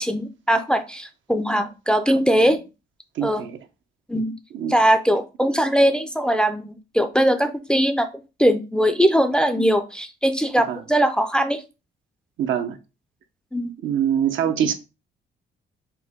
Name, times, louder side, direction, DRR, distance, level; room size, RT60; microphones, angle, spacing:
voice 1, 0.0-2.6 3.2-3.5 4.1-4.3 4.7-8.1 8.4-11.6 13.5-13.7, equal, 5° left, 0.4 m, -20 dB
voice 2, 3.2-3.6 4.5-4.8 10.7-10.8 12.4-12.8 13.8-14.7, right 9 dB, 75° right, 0.6 m, -23 dB
4.4 x 2.1 x 3.5 m
cardioid pair, 90°, 20 cm